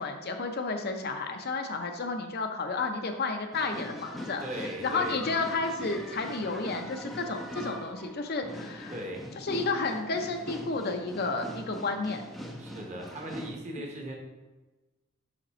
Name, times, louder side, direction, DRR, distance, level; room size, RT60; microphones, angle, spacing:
voice 1, 0.0-8.9 9.4-12.2, left 3 dB, 45° left, 5 dB, 0.6 m, -32 dB
sound 1, 3.5-13.6, equal, ahead, 0.5 m, -42 dB
voice 2, 4.4-5.4 8.9-9.4 12.6-14.1, right 1 dB, 30° right, 1 dB, 1.1 m, -38 dB
5.9 x 5.1 x 4.2 m, 1.2 s
head